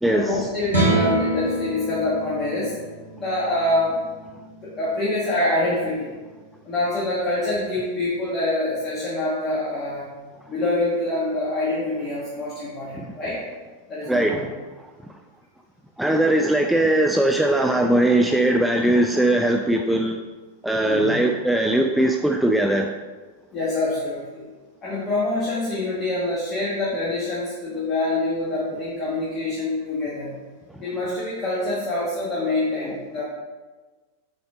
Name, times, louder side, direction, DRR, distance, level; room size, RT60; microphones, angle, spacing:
voice 1, 0.1-2.7 3.2-4.0 4.6-6.1 6.6-10.1 10.5-13.4 13.9-14.4 20.8-21.2 23.5-24.4 24.8-30.3 30.8-33.2, left 2 dB, 30° left, -7 dB, 1.6 m, -25 dB
sound 1, 0.6-7.0, right 1 dB, 85° right, 1.8 m, -28 dB
voice 2, 14.1-14.4 16.0-20.2 20.6-22.9, right 1 dB, ahead, 2 dB, 0.4 m, -20 dB
6.6 x 4.2 x 3.8 m, 1.3 s
figure-of-eight pair, 90°, 0 cm